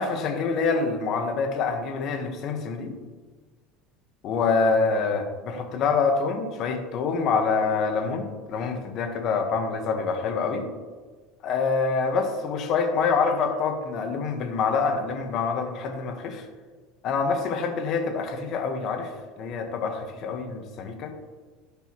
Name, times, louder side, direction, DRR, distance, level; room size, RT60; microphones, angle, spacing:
voice 1, 0.0-2.9 4.2-10.7 11.4-16.5 17.0-19.1 19.4-21.1, left 4 dB, 50° left, 4 dB, 1.5 m, -26 dB
14.5 x 5.3 x 3.2 m, 1.4 s
supercardioid pair, 120°, 0 cm